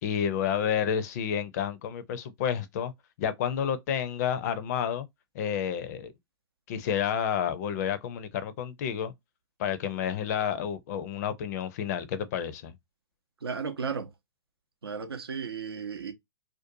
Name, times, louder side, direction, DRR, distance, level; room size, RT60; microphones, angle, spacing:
voice 1, 0.0-2.9 3.2-5.1 5.3-6.1 6.7-9.1 9.6-12.7, left 8 dB, 45° left, 0.4 m, -30 dB
voice 2, 13.4-14.1 14.8-16.1, right 6 dB, 85° right, 0.6 m, -34 dB
2.5 x 2.2 x 2.6 m
hypercardioid pair, 120°, 13 cm